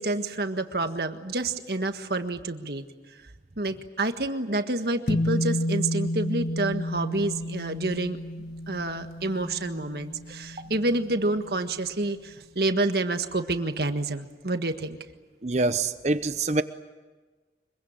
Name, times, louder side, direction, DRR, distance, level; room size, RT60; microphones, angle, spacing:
voice 1, 0.0-2.8 3.6-8.2 8.7-15.0, right 2 dB, 60° right, 1.6 m, -28 dB
sound 1, 5.1-11.7, left 1 dB, 60° left, 1.7 m, -31 dB
voice 2, 15.4-16.6, right 3 dB, 40° right, 0.8 m, -25 dB
25.0 x 23.0 x 8.9 m
head